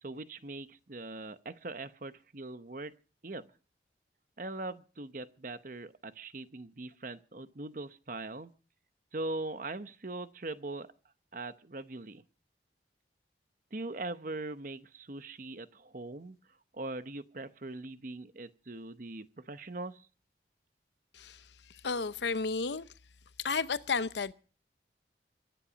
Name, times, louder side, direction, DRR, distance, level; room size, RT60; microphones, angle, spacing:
voice 1, 0.0-2.9 3.2-3.5 4.4-8.5 9.1-10.9 11.3-12.2 13.7-16.4 16.7-20.1, right 2 dB, 45° right, 0.9 m, -41 dB
voice 2, 21.8-22.8 23.4-24.3, left 4 dB, 75° left, 0.8 m, -32 dB
23.5 x 10.0 x 5.2 m
head